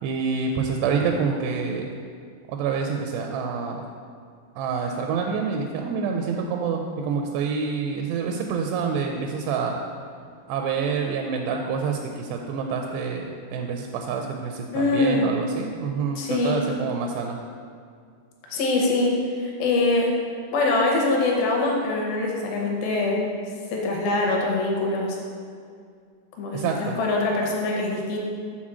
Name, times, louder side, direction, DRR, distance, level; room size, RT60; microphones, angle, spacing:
voice 1, 0.0-1.9 2.5-3.8 4.6-9.8 10.5-17.4 26.5-27.0, right 5 dB, 85° right, 2 dB, 2.6 m, -27 dB
voice 2, 14.7-15.3 16.2-16.6 18.5-20.1 20.5-23.2 23.7-25.2 26.4-28.2, left 2 dB, 75° left, -1 dB, 2.4 m, -23 dB
7.4 x 4.1 x 6.1 m, 2.2 s
omnidirectional pair, 4.9 m